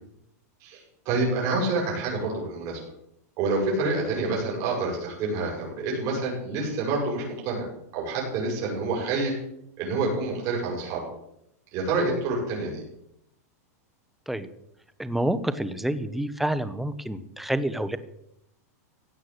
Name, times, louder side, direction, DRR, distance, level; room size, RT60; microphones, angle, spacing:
voice 1, 0.6-2.8 3.4-7.7 7.9-9.4 9.8-11.0 11.7-12.8, right 3 dB, 40° right, -3 dB, 7.8 m, -27 dB
voice 2, 15.0-18.0, right 1 dB, ahead, 12 dB, 1.0 m, -28 dB
16.5 x 8.4 x 8.1 m, 0.79 s
supercardioid pair, 145°, 9 cm